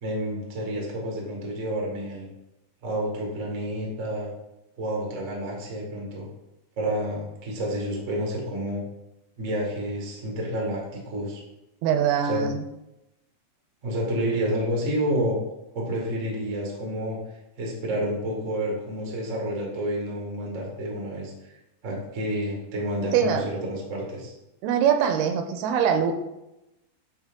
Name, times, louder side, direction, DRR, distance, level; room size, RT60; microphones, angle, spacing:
voice 1, 0.0-2.2 2.8-4.3 4.8-6.3 6.8-8.8 9.4-11.4 12.2-12.5 13.8-15.4 15.7-17.2 17.6-21.3 21.8-24.3, right 1 dB, 55° right, -1 dB, 0.8 m, -29 dB
voice 2, 11.8-12.6 23.1-23.5 24.6-26.1, right 8 dB, 90° right, 6 dB, 2.7 m, -22 dB
9.9 x 4.0 x 3.6 m, 0.92 s
omnidirectional pair, 4.5 m